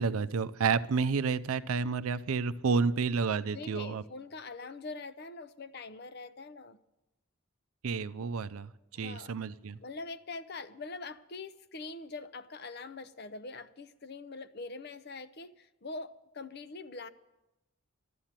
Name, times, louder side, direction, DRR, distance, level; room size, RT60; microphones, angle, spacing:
voice 1, 0.0-4.0 7.8-8.7 9.0-9.8, right 5 dB, 80° right, 13 dB, 0.5 m, -30 dB
voice 2, 3.5-6.8 8.9-9.3 9.8-17.1, left 3 dB, 45° left, 14 dB, 0.6 m, -43 dB
13.0 x 12.5 x 7.4 m, 0.97 s
head